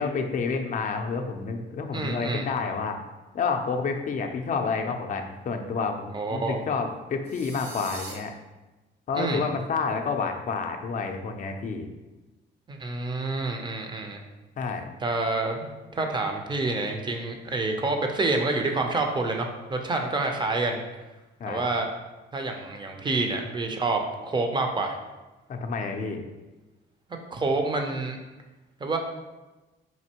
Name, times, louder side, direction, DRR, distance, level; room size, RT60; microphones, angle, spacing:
voice 1, 0.0-3.0 3.3-8.3 9.1-11.9 14.6-14.9 21.4-21.7 25.5-26.3, left 5 dB, 40° left, 5 dB, 0.4 m, -29 dB
voice 2, 1.9-2.5 6.1-6.6 9.1-9.4 12.7-14.2 15.0-20.8 21.5-21.9 22.3-25.0 27.3-28.2 28.8-29.0, right 3 dB, 25° right, 3 dB, 0.5 m, -28 dB
sound 1, 7.2-8.1, right 2 dB, 60° right, 1.0 m, -41 dB
4.2 x 2.6 x 2.9 m, 1.1 s
cardioid pair, 90°, 20 cm